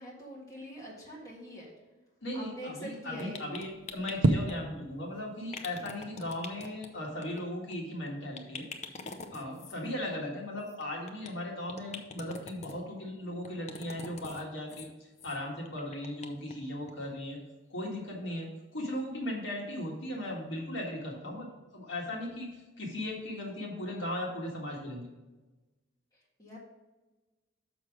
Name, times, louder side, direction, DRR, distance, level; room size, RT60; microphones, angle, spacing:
voice 1, 0.0-1.7 2.3-3.4 26.4-26.6, equal, 15° left, -4 dB, 1.7 m, -44 dB
voice 2, 2.2-8.7 9.3-14.9 15.2-17.4 17.7-18.5 18.7-21.5 21.7-22.5 22.8-25.1, left 1 dB, 60° left, -1 dB, 1.8 m, -37 dB
sound 1, 3.2-4.5 5.5-6.9 7.2-7.4 7.7-7.8 8.1-8.2 8.3-9.8 10.7-11.3 11.7-12.8 13.4-14.4 14.7-14.9 15.2-15.4 15.6-16.5 16.9-17.0 17.3-17.4, left 4 dB, 35° left, 0.6 m, -44 dB
sound 2, 3.6-20.8, right 2 dB, 65° right, 0.5 m, -40 dB
6.2 x 6.0 x 4.9 m, 1.2 s
head